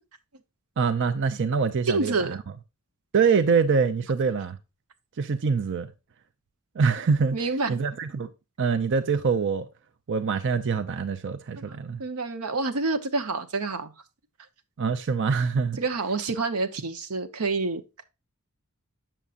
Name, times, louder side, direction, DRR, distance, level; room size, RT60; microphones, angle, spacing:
voice 1, 0.8-2.4 3.1-4.6 5.2-5.9 6.7-7.4 7.7-8.3 8.6-9.7 10.1-12.0 14.8-15.8, right 5 dB, 55° right, 0.5 m, -24 dB
voice 2, 1.9-2.4 7.3-7.7 11.6-13.9 15.8-18.0, right 3 dB, 90° right, 1.0 m, -28 dB
7.3 x 7.0 x 2.5 m
head